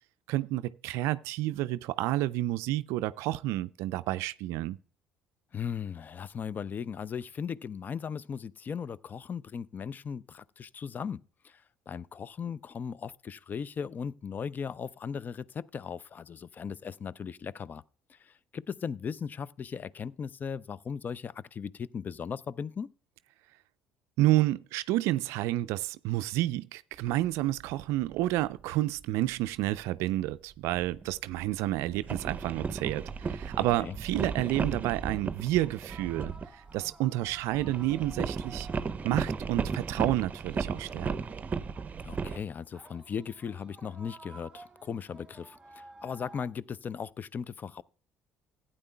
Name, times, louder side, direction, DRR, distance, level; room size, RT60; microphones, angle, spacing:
voice 1, 0.3-4.8 24.2-38.7 39.0-41.2, right 16 dB, 70° right, 0.3 m, -30 dB
voice 2, 5.5-17.8 18.1-22.9 33.6-34.0 42.0-47.8, left 7 dB, 35° left, 0.4 m, -38 dB
sound 1, 27.0-27.3 27.8-28.6 29.0-29.5 30.6-36.9 37.2-42.4, right 5 dB, 30° right, 0.7 m, -35 dB
sound 2, 35.9-46.5, right 2 dB, 15° right, 1.6 m, -54 dB
15.5 x 8.9 x 2.2 m
hypercardioid pair, 60°, 5 cm